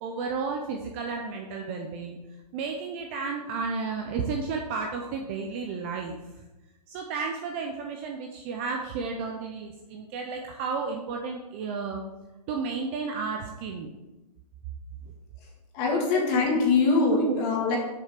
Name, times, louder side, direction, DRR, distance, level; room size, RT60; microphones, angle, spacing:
voice 1, 0.0-2.2 2.5-6.2 6.9-12.0 12.5-13.9 15.0-15.1 17.0-17.4, right 5 dB, 20° right, 2 dB, 0.4 m, -32 dB
voice 2, 15.7-17.8, left 4 dB, 25° left, 0 dB, 1.8 m, -23 dB
7.1 x 6.7 x 5.0 m, 1.0 s
hypercardioid pair, 165°, 21 cm